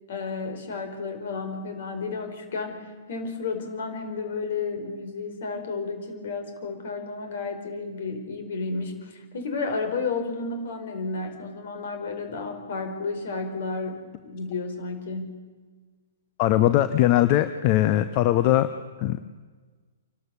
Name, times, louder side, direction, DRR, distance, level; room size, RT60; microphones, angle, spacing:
voice 1, 0.1-15.4, left 4 dB, 60° left, 6 dB, 4.6 m, -32 dB
voice 2, 16.4-18.7 19.0-19.2, left 13 dB, 40° left, 12 dB, 0.9 m, -20 dB
27.5 x 12.5 x 8.4 m, 1.4 s
hypercardioid pair, 120°, 0 cm